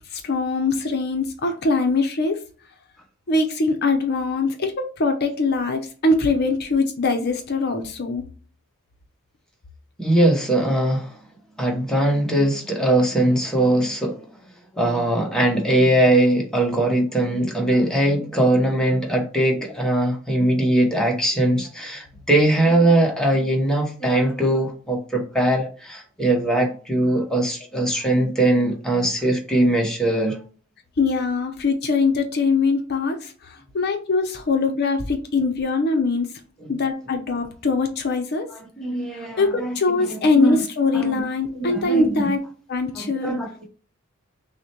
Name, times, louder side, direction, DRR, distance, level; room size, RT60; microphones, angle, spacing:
voice 1, 0.1-2.4 3.3-8.2 31.0-36.3 36.7-38.5 39.2-42.4 42.7-43.3, left 3 dB, 50° left, 0.6 m, -22 dB
voice 2, 10.0-11.1 11.6-14.3 14.7-30.4 36.6-36.7 38.8-40.6 40.9-41.2 41.6-42.3 43.0-43.7, right 1 dB, 5° left, 0.9 m, -21 dB
6.0 x 2.1 x 2.9 m
head